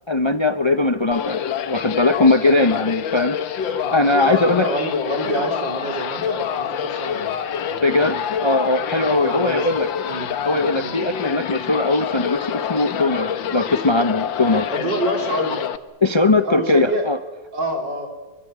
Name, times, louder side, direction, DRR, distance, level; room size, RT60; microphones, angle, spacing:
voice 1, 0.1-1.4 1.7-4.7 7.8-9.9 10.4-14.7 16.0-17.2, left 2 dB, 30° left, 9 dB, 0.5 m, -20 dB
sound 1, 1.1-15.8, left 8 dB, 85° left, 1.8 m, -26 dB
voice 2, 4.2-8.2 8.9-9.6 10.1-10.3 10.7-11.1 14.7-15.6 16.4-17.1 17.5-18.1, right 1 dB, 70° right, 3 dB, 5.0 m, -27 dB
25.0 x 23.5 x 9.4 m, 1.2 s
omnidirectional pair, 2.0 m